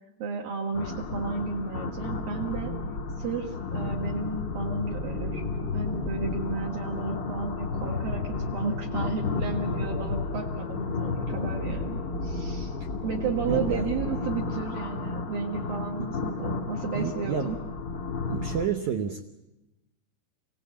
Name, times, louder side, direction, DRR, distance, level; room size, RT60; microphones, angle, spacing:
voice 1, 0.2-2.7 3.2-5.4 5.7-12.8 13.0-17.6, right 5 dB, 60° right, 0 dB, 3.2 m, -33 dB
sound 1, 0.7-18.7, left 3 dB, 50° left, 1.4 m, -32 dB
voice 2, 13.5-13.8 16.0-16.1 16.9-17.6 18.3-19.2, right 7 dB, 85° right, 6 dB, 1.6 m, -30 dB
24.5 x 18.0 x 8.6 m, 0.99 s
omnidirectional pair, 4.8 m